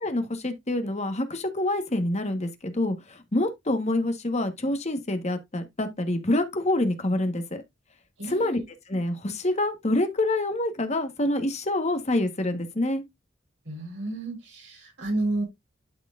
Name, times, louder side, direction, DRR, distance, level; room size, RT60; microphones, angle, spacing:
voice 1, 0.0-7.6 8.3-8.6 8.9-13.0, left 1 dB, 35° left, 1.3 m, -26 dB
voice 2, 8.2-8.7 13.7-15.4, right 2 dB, 70° right, 4.1 m, -31 dB
12.0 x 4.6 x 2.5 m
head